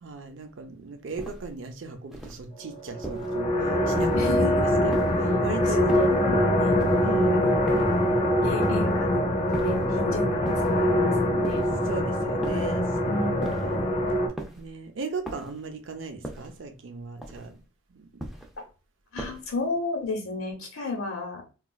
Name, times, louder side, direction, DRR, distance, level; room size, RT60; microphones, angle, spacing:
voice 1, 0.0-5.8 7.0-7.4 11.9-14.0 14.5-17.6 17.9-18.2, right 4 dB, 60° right, 0.5 m, -37 dB
sound 1, 1.2-1.6 2.1-2.5 3.0-3.4 4.0-4.4 4.9-5.3 5.9-6.2 6.8-7.1 7.7-8.1 8.6-9.0 9.5-9.9 10.4-10.9 11.4-11.9 12.4-12.8 13.4-13.8 14.4-14.7 15.2-15.7 16.2-16.6 17.2-17.6 18.2-18.6 19.2-19.6, right 1 dB, ahead, 0.4 m, -39 dB
sound 2, 2.9-14.3, left 1 dB, 45° left, 0.7 m, -24 dB
voice 2, 4.1-4.9 5.6-6.8 7.3-7.5 8.4-11.7 13.1-13.6 18.6-18.7 19.1-21.4, left 3 dB, 85° left, 0.9 m, -33 dB
4.1 x 2.3 x 2.3 m
head